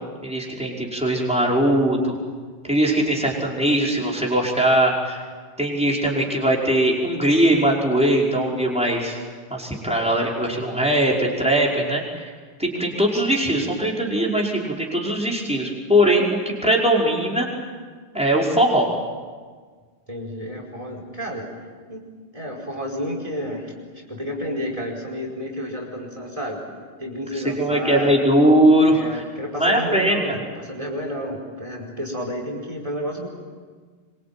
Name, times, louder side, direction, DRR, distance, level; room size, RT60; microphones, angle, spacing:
voice 1, 0.2-2.2 2.6-5.2 5.6-9.2 9.5-12.3 12.6-17.5 18.1-18.9 27.6-29.2 29.6-30.2, right 1 dB, 5° right, -3 dB, 5.5 m, -20 dB
voice 2, 20.1-21.5 21.9-22.0 22.3-23.7 24.1-26.6 27.0-28.1 28.8-33.3, equal, 35° right, 1 dB, 5.2 m, -30 dB
26.0 x 24.5 x 9.0 m, 1.5 s
omnidirectional pair, 1.0 m